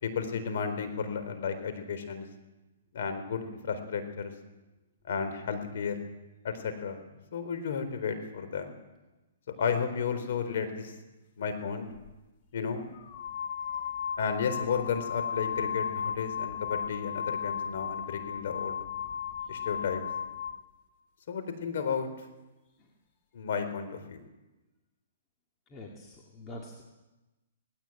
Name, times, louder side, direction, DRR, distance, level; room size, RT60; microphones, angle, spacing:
voice 1, 0.0-2.3 2.9-4.3 5.0-6.0 6.4-7.0 7.3-8.8 9.6-10.9 11.4-11.9 12.5-12.9 14.2-18.8 19.5-20.0 21.3-22.1 23.3-24.2, left 6 dB, 60° left, 9 dB, 4.1 m, -33 dB
sound 1, 11.9-12.1 12.9-20.6, left 7 dB, 45° left, 1.5 m, -35 dB
voice 2, 25.7-26.8, left 1 dB, 20° left, 0 dB, 2.5 m, -46 dB
18.5 x 17.0 x 9.1 m, 1.1 s
hypercardioid pair, 155°, 0 cm